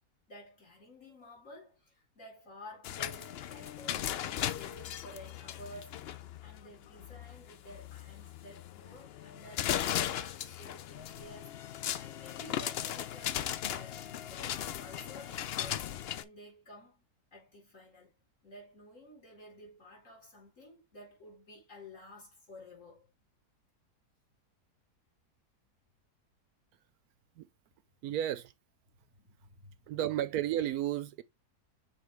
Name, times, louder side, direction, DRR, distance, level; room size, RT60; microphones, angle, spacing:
voice 1, 0.3-6.1 6.4-14.0 14.3-17.1 17.3-23.1 29.0-30.0, left 1 dB, 50° left, 4.3 m, -53 dB
sound 1, 2.8-16.2, left 10 dB, 85° left, 0.5 m, -37 dB
voice 2, 28.0-28.5 29.9-31.2, right 11 dB, 75° right, 1.0 m, -32 dB
6.8 x 4.3 x 3.2 m
omnidirectional pair, 1.7 m